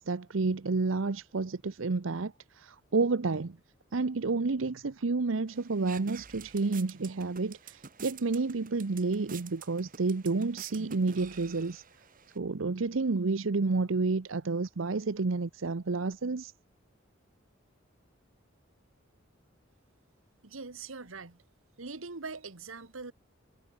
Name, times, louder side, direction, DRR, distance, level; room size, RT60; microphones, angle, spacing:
voice 1, 0.0-3.6 3.9-11.8 12.4-16.5, right 3 dB, 75° right, 0.8 m, -30 dB
sound 1, 5.5-12.4, right 6 dB, 45° right, 2.4 m, -49 dB
voice 2, 20.4-21.4 21.8-23.1, right 4 dB, 90° right, 1.6 m, -42 dB
head